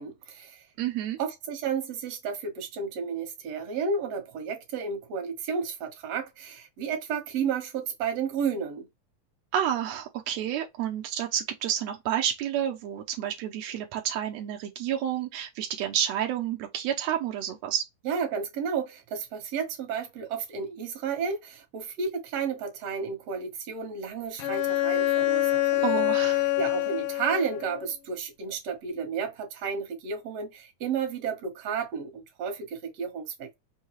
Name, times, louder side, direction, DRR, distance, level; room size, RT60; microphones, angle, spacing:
voice 1, 0.0-0.6 1.2-8.9 18.1-25.9 26.6-33.5, right 6 dB, 60° right, 2.0 m, -32 dB
voice 2, 0.8-1.2 9.5-17.9 25.8-26.5, right 10 dB, 80° right, 1.5 m, -30 dB
Bowed string instrument, 24.4-27.9, left 16 dB, 80° left, 2.0 m, -26 dB
5.5 x 2.2 x 3.0 m
omnidirectional pair, 3.7 m